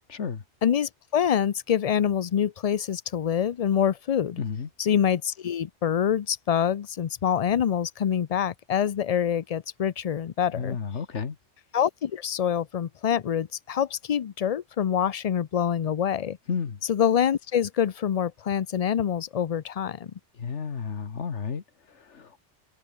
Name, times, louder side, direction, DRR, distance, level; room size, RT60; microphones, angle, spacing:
voice 1, 0.1-0.4 4.4-4.7 10.5-11.4 16.5-16.8 20.3-22.4, left 6 dB, 90° left, 1.8 m, -32 dB
voice 2, 0.6-4.4 4.8-10.8 11.7-16.4 16.9-20.1, left 8 dB, 50° left, 0.5 m, -25 dB
omnidirectional pair, 1.2 m